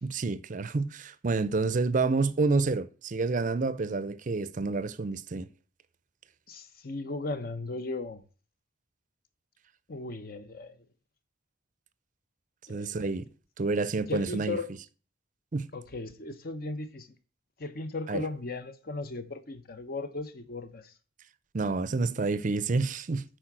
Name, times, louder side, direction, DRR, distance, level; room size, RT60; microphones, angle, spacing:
voice 1, 0.0-5.5 12.7-13.2 13.6-14.6 15.5-15.7 18.1-18.2 21.5-23.2, right 3 dB, 40° right, 0.5 m, -28 dB
voice 2, 6.5-8.2 9.9-10.8 12.7-13.0 14.1-14.7 15.7-17.1 17.6-20.9, left 3 dB, 50° left, 0.9 m, -36 dB
8.8 x 4.6 x 6.0 m
head